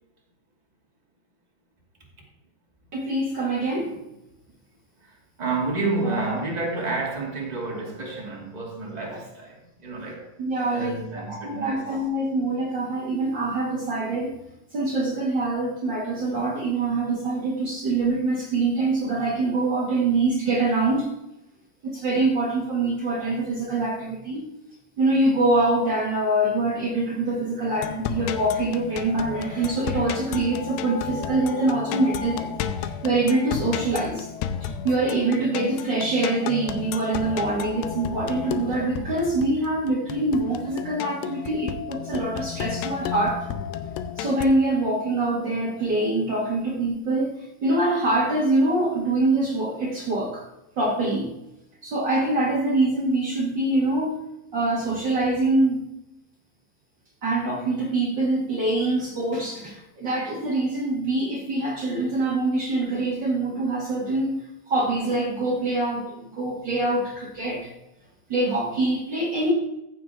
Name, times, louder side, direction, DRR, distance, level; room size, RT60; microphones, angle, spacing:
voice 1, 2.9-4.0 6.1-6.3 10.4-14.3 14.7-21.1 21.8-24.5 25.0-32.5 32.8-34.3 34.6-43.5 44.1-50.4 50.8-51.3 51.8-54.2 54.5-55.8 57.2-64.4 64.7-67.7 68.3-69.5, right 2 dB, 70° right, 1.0 m, -24 dB
voice 2, 5.0-10.3 10.7-11.9, right 3 dB, 15° right, 1.7 m, -30 dB
sound 1, 27.8-44.5, left 9 dB, 85° left, 2.8 m, -32 dB
14.5 x 7.6 x 3.6 m
omnidirectional pair, 5.1 m